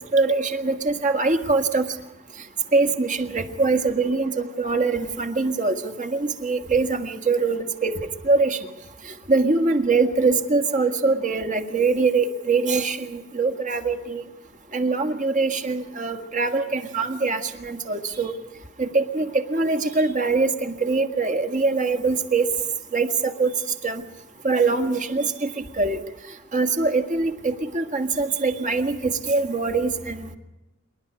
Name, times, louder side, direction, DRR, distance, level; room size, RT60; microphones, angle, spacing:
voice 1, 0.1-1.9 2.7-8.6 9.3-14.2 14.7-18.3 18.8-22.5 22.9-23.5 23.8-24.0 24.4-26.0 26.5-30.4, right 3 dB, 40° right, 7 dB, 1.8 m, -23 dB
27.0 x 11.5 x 9.6 m, 1.0 s
head